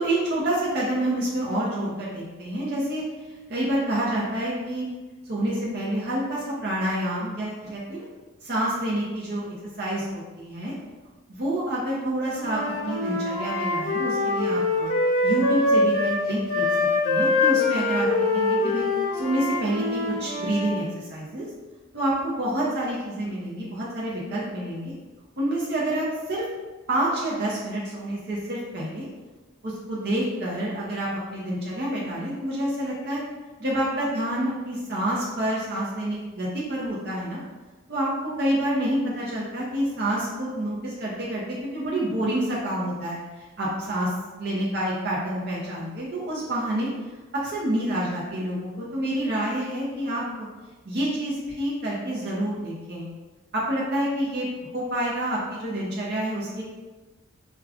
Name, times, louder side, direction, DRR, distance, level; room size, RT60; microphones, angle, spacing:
voice 1, 0.0-3.0 3.5-4.9 5.3-8.1 8.4-10.7 11.3-14.9 15.2-18.9 19.1-21.4 21.9-24.9 25.4-26.4 26.9-29.0 29.6-33.2 33.6-37.4 37.9-44.1 44.4-46.9 47.3-50.5 50.9-53.1 53.5-54.5 54.7-56.6, right 1 dB, 50° right, -6 dB, 0.6 m, -28 dB
Wind instrument woodwind instrument, 12.3-16.2 16.5-20.8, left 2 dB, 80° left, 0.7 m, -24 dB
4.7 x 2.2 x 2.4 m, 1.2 s
head